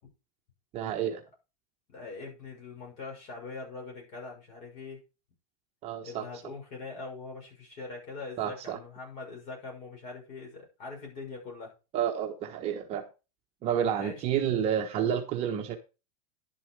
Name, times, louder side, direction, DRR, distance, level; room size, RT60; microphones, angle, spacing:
voice 1, 0.7-1.2 5.8-6.2 8.4-8.8 11.9-13.0 13.6-15.8, right 9 dB, 30° right, 3 dB, 1.2 m, -30 dB
voice 2, 1.9-5.0 6.0-11.7 14.0-14.4, left 3 dB, 35° left, 0 dB, 6.4 m, -42 dB
11.0 x 7.4 x 4.9 m, 0.30 s
supercardioid pair, 165°, 20 cm